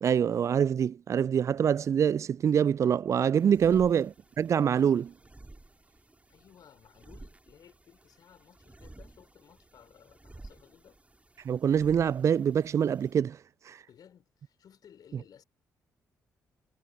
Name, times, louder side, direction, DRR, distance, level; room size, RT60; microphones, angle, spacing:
voice 1, 0.0-4.1 4.4-5.1 11.5-13.4, right 8 dB, 35° right, 0.3 m, -25 dB
sound 1, 3.3-13.2, right 2 dB, 15° right, 4.2 m, -53 dB
voice 2, 6.3-11.0 13.9-15.4, left 8 dB, 50° left, 3.7 m, -57 dB
figure-of-eight pair, 40°, 8 cm